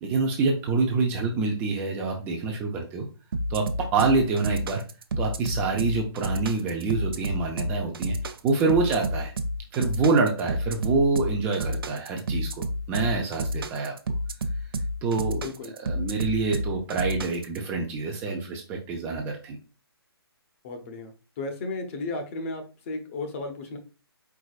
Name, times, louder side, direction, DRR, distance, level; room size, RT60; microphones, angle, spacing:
voice 1, 0.0-3.1 3.5-4.8 5.2-8.2 8.4-9.3 9.7-13.9 15.0-15.4 15.8-19.6, right 4 dB, 15° right, 1 dB, 0.5 m, -26 dB
sound 1, 3.3-17.6, equal, 60° right, 0.6 m, -30 dB
voice 2, 20.6-21.1 21.4-23.8, left 3 dB, 30° left, 6 dB, 0.8 m, -34 dB
4.7 x 3.8 x 2.4 m, 0.33 s
hypercardioid pair, 150°, 13 cm